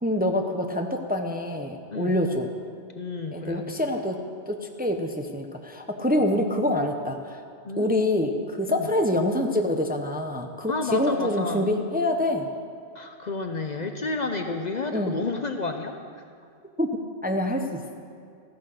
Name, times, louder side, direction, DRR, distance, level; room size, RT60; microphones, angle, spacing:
voice 1, 0.0-2.5 3.3-4.2 4.5-7.4 7.8-12.5 14.9-15.2 16.8-16.9 17.2-17.8, left 1 dB, 10° right, 4 dB, 0.6 m, -26 dB
voice 2, 3.0-3.8 6.3-6.4 7.6-7.9 8.7-8.9 10.7-11.7 12.9-16.2, left 3 dB, 45° left, 5 dB, 0.7 m, -31 dB
14.0 x 9.7 x 6.5 m, 2.4 s
omnidirectional pair, 1.2 m